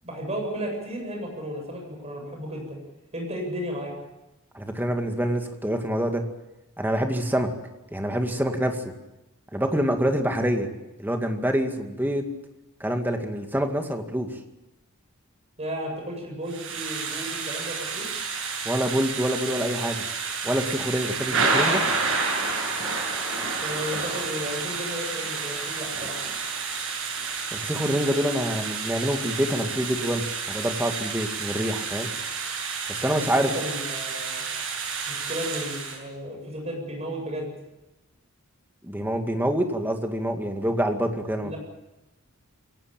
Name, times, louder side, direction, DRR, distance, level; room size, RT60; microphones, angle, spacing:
voice 1, 0.0-2.8 3.1-3.9 15.6-18.2 23.6-26.2 33.4-34.4 35.1-37.5 41.4-41.6, equal, 30° right, 1 dB, 7.9 m, -34 dB
voice 2, 4.5-6.2 6.8-7.5 7.9-8.8 9.5-10.7 11.0-12.2 12.8-14.3 18.6-20.0 20.4-21.8 27.5-32.1 32.9-33.5 38.8-41.5, equal, 10° right, 4 dB, 2.2 m, -26 dB
Thunder / Rain, 16.5-36.0, right 4 dB, 60° right, 8.0 m, -30 dB
23.0 x 18.5 x 9.0 m, 0.99 s
head